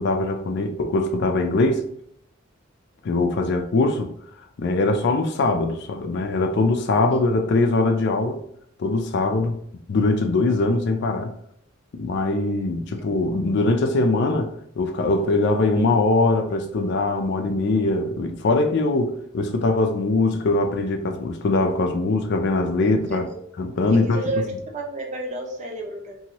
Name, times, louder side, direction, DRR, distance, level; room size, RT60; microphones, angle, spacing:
voice 1, 0.0-1.9 3.0-4.1 4.6-8.4 8.8-9.6 9.9-11.3 11.9-23.3 23.6-24.2, left 2 dB, 60° left, 0.4 m, -22 dB
voice 2, 23.9-24.4 24.7-26.2, right 2 dB, 35° right, 0.6 m, -31 dB
2.9 x 2.6 x 2.8 m
head